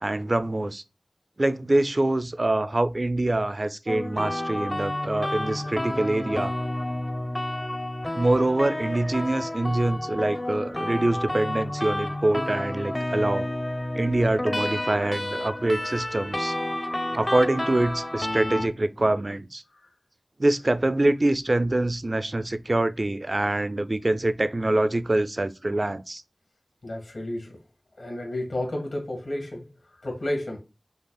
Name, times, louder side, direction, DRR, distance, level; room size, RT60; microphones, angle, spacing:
voice 1, 0.0-0.8 1.4-6.5 8.1-13.5 13.9-16.5 17.1-19.6 20.4-26.2, right 2 dB, 45° right, 0.4 m, -25 dB
sound 1, 3.9-18.7, left 1 dB, 25° left, 0.5 m, -30 dB
voice 2, 26.8-27.6 28.0-30.6, left 1 dB, 80° left, 1.6 m, -32 dB
5.5 x 2.0 x 2.2 m
wide cardioid pair, 40°, 0 cm